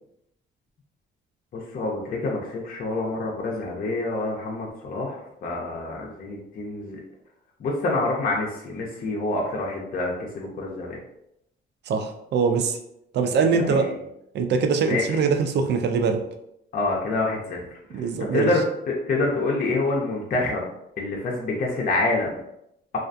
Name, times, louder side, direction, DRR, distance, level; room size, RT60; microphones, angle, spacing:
voice 1, 1.5-7.0 7.6-11.0 13.6-13.8 14.9-15.2 16.7-17.6 18.3-18.6 18.9-20.6 21.0-22.3, left 2 dB, 45° left, -2 dB, 0.5 m, -27 dB
voice 2, 11.9-12.8 13.1-13.9 14.3-16.2 17.9-18.5, right 5 dB, 60° right, 6 dB, 0.4 m, -22 dB
2.3 x 2.2 x 2.5 m, 0.79 s
cardioid pair, 90°, 20 cm